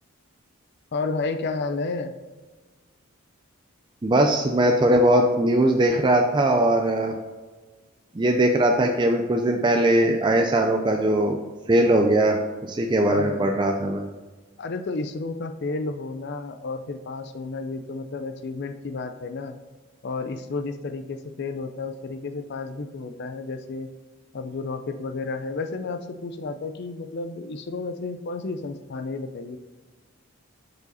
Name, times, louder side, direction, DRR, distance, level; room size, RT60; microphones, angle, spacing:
voice 1, 0.9-2.1 13.1-13.6 14.6-19.5 20.0-23.9 24.3-29.6, left 3 dB, 50° left, 7 dB, 0.4 m, -32 dB
voice 2, 4.0-7.1 8.2-11.4 11.7-14.0, right 1 dB, 20° right, 3 dB, 0.4 m, -20 dB
6.7 x 4.8 x 4.0 m, 1.3 s
head